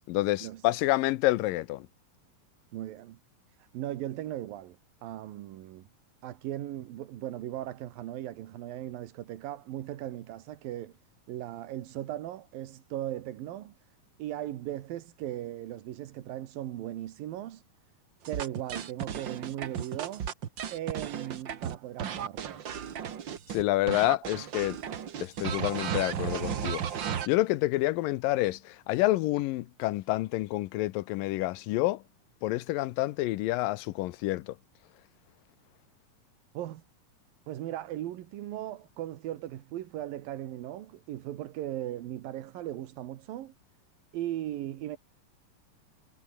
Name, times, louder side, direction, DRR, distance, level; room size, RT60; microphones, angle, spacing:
voice 1, 0.1-1.9 23.5-24.8 25.2-32.0 32.4-34.6, left 18 dB, 80° left, 2.4 m, -28 dB
voice 2, 2.7-3.2 3.6-5.9 6.2-10.9 11.3-13.7 14.2-17.6 18.3-20.3 20.7-22.6 24.4-24.5 36.5-36.8 37.5-43.5 44.1-45.0, right 13 dB, 90° right, 3.1 m, -38 dB
sound 1, 18.3-23.6 23.9-27.3, right 8 dB, 50° right, 1.5 m, -35 dB
omnidirectional pair, 4.0 m